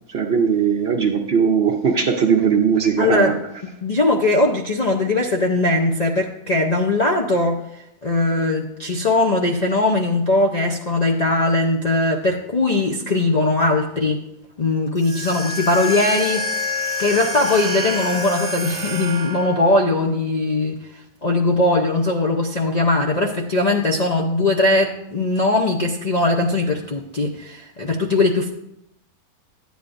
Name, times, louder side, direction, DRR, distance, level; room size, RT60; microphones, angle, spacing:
voice 1, 0.1-3.4, right 6 dB, 55° right, 3 dB, 0.8 m, -19 dB
voice 2, 3.0-3.4 3.6-14.2 14.6-16.7 17.0-28.5, left 2 dB, 50° left, 1 dB, 0.5 m, -20 dB
sound 1, 15.0-19.7, left 2 dB, 25° right, 0.9 m, -27 dB
12.0 x 9.2 x 2.5 m, 0.80 s
omnidirectional pair, 1.6 m